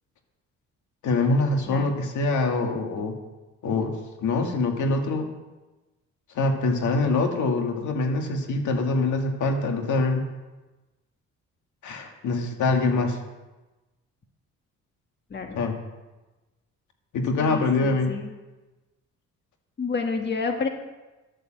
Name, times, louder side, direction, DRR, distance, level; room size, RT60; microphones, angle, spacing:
voice 1, 1.0-3.2 3.6-5.3 6.4-10.3 11.8-13.2 15.5-15.7 17.1-18.1, left 3 dB, 75° left, 4 dB, 2.0 m, -24 dB
voice 2, 17.4-18.3 19.8-20.7, left 4 dB, 35° left, 4 dB, 1.6 m, -29 dB
11.5 x 8.7 x 7.6 m, 1.1 s
cardioid pair, 90°, 30 cm